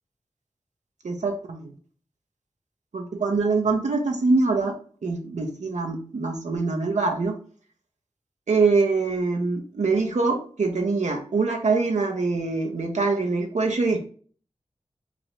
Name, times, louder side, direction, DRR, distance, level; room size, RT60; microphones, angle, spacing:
voice 1, 1.0-1.7 2.9-4.8 5.0-7.3 8.5-14.0, right 3 dB, 75° right, 2 dB, 0.8 m, -24 dB
4.8 x 2.5 x 3.0 m, 0.43 s
wide cardioid pair, 80°, 12 cm